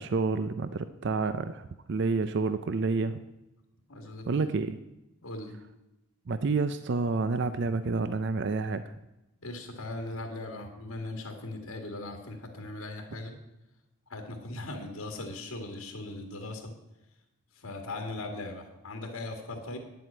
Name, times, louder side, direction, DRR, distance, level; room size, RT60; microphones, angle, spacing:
voice 1, 0.0-3.2 4.3-4.8 6.3-8.9, right 4 dB, 50° right, 12 dB, 0.4 m, -29 dB
voice 2, 3.9-4.5 5.2-5.5 9.4-13.4 14.1-16.7 17.6-19.8, left 2 dB, 75° left, 4 dB, 1.8 m, -39 dB
9.8 x 7.8 x 8.5 m, 0.94 s
head